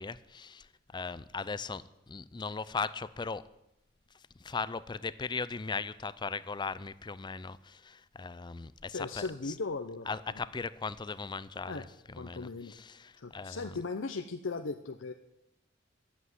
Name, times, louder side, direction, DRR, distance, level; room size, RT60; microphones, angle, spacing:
voice 1, 0.0-3.5 4.1-9.5 10.1-13.8, left 4 dB, 25° left, 0.5 m, -38 dB
voice 2, 8.9-10.1 11.7-11.8 12.2-12.7 13.2-15.1, left 3 dB, 75° left, 0.7 m, -37 dB
12.0 x 8.4 x 9.4 m
head